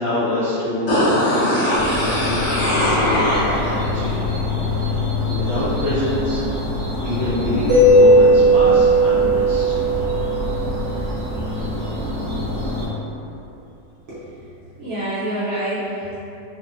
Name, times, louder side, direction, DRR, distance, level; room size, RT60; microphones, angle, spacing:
voice 1, 0.0-5.0 5.2-6.4 7.0-9.8 10.9-11.1, left 1 dB, 80° left, -12 dB, 0.5 m, -26 dB
sound 1, 0.9-3.9 4.2-4.3, equal, 55° left, 1.1 m, -20 dB
sound 2, 1.7-12.9, left 2 dB, 20° left, 0.7 m, -26 dB
Mallet percussion, 7.7-11.5, right 1 dB, 20° right, 1.0 m, -16 dB
voice 2, 14.1-14.4 14.8-16.2, right 1 dB, 60° right, -13 dB, 0.8 m, -27 dB
2.9 x 2.0 x 2.5 m, 2.8 s
omnidirectional pair, 1.9 m